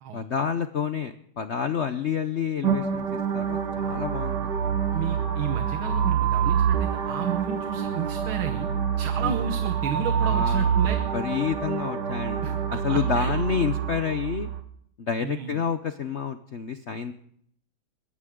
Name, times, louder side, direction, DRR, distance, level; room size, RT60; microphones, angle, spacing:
voice 1, 0.1-3.6 3.8-4.6 9.2-9.3 10.2-10.8 11.1-12.6 12.8-14.5 15.0-17.1, left 7 dB, 70° left, 9 dB, 0.6 m, -29 dB
sound 1, 2.6-14.6, right 7 dB, 60° right, 1.8 m, -26 dB
voice 2, 4.9-8.7 9.0-11.0 12.4-13.3 15.2-15.6, right 9 dB, 85° right, 8 dB, 1.9 m, -32 dB
22.0 x 16.0 x 3.7 m, 0.66 s
omnidirectional pair, 2.2 m